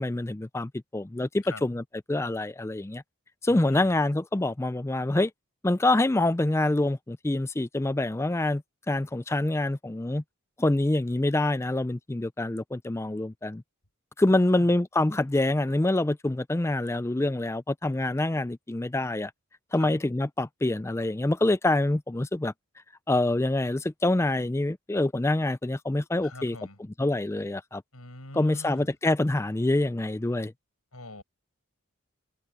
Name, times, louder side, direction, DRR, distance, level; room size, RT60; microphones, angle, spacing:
voice 1, 0.0-1.8 2.1-3.0 3.4-5.3 5.6-10.2 10.6-13.6 14.2-19.3 19.7-22.5 23.1-26.6 27.0-27.8 28.3-30.5, left 2 dB, 10° left, 0.3 m, -26 dB
voice 2, 3.5-4.0 14.3-14.7 19.7-19.9 26.2-26.8 27.9-28.9 30.9-31.2, left 2 dB, 75° left, 7.9 m, -44 dB
head